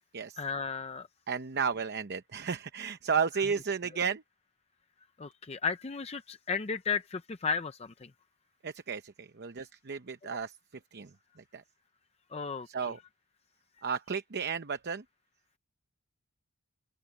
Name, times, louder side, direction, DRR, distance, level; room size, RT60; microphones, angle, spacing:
voice 1, 0.4-1.1 5.2-8.1 12.3-12.7, left 5 dB, 30° left, 0.5 m, -34 dB
voice 2, 1.3-4.2 8.6-10.5 10.9-11.1 11.5-11.6 12.7-13.0 13.8-15.0, right 6 dB, 50° right, 0.8 m, -33 dB
open air
head